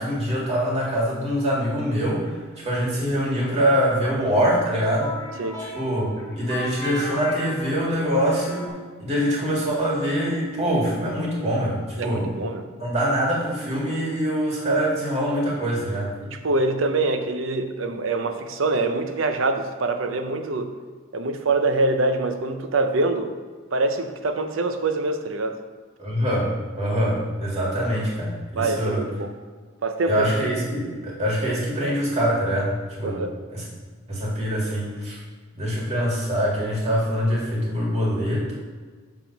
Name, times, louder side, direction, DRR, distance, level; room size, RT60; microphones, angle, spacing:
voice 1, 0.0-5.1 5.7-8.7 9.0-12.3 12.8-16.1 26.0-29.1 30.1-33.2 33.5-33.6 34.1-35.2 35.6-38.5, equal, 30° right, -5 dB, 2.0 m, -24 dB
sound 1, 2.3-8.7, left 1 dB, 15° left, 1.5 m, -37 dB
voice 2, 12.0-12.6 16.2-20.7 21.1-23.3 23.7-25.6 28.5-29.3 29.8-30.5 33.0-33.3, right 2 dB, 70° right, 7 dB, 0.6 m, -24 dB
7.0 x 3.7 x 5.8 m, 1.5 s
head